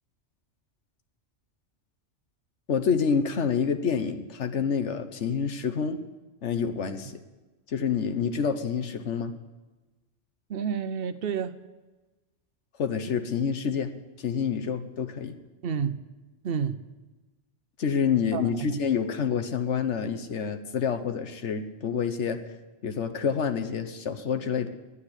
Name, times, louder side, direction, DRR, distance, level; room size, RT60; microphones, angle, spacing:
voice 1, 2.7-6.0 6.4-7.2 7.7-9.3 12.8-13.9 14.2-15.4 17.8-22.4 22.8-24.7, left 6 dB, 75° left, 8 dB, 1.3 m, -27 dB
voice 2, 10.5-11.6 15.6-16.0 16.4-16.8 18.3-18.8, right 7 dB, 60° right, 12 dB, 0.9 m, -30 dB
11.0 x 9.8 x 9.9 m, 1.2 s
omnidirectional pair, 1.2 m